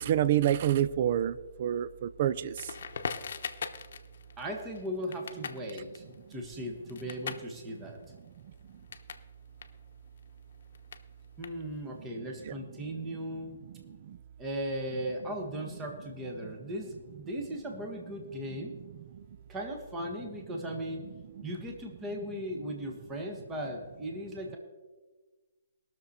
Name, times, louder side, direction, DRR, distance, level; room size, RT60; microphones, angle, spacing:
voice 1, 0.0-1.3 1.6-2.5, right 11 dB, 40° right, 16 dB, 0.4 m, -27 dB
Crackle, 2.6-9.3 9.5-12.0, left 6 dB, 60° left, 0.9 m, -42 dB
voice 2, 4.4-8.0 11.4-13.6 14.4-18.8 19.5-21.1 21.4-24.6, equal, 15° right, 1 dB, 1.4 m, -37 dB
20.0 x 6.7 x 4.3 m, 1.3 s
hypercardioid pair, 165°, 0 cm